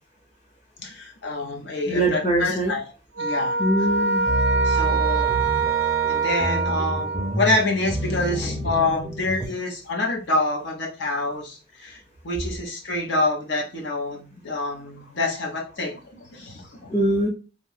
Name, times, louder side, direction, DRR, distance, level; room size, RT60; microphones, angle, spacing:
voice 1, 0.8-2.9 3.2-3.6 4.6-5.3 6.1-16.9, left 2 dB, 70° left, 1 dB, 0.8 m, -27 dB
voice 2, 1.9-2.7 3.6-4.2 16.9-17.3, right 1 dB, 40° left, -4 dB, 0.8 m, -22 dB
sound 1, 3.2-7.6, right 5 dB, 85° right, 0.4 m, -24 dB
sound 2, 4.3-9.5, right 1 dB, 5° left, 0.5 m, -29 dB
2.7 x 2.4 x 3.3 m, 0.32 s
head